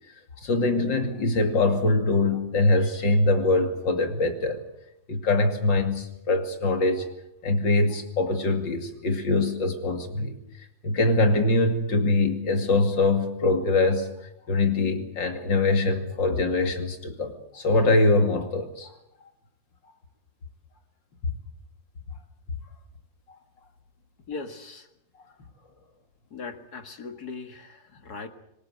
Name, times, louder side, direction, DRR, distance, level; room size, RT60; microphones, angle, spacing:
voice 1, 0.4-4.6 5.1-7.1 7.4-10.4 10.8-14.1 14.5-18.9, left 2 dB, 75° left, 6 dB, 3.3 m, -23 dB
voice 2, 24.3-24.9 26.3-28.3, left 4 dB, 55° left, 8 dB, 2.3 m, -39 dB
25.5 x 20.0 x 7.9 m, 0.81 s
omnidirectional pair, 2.0 m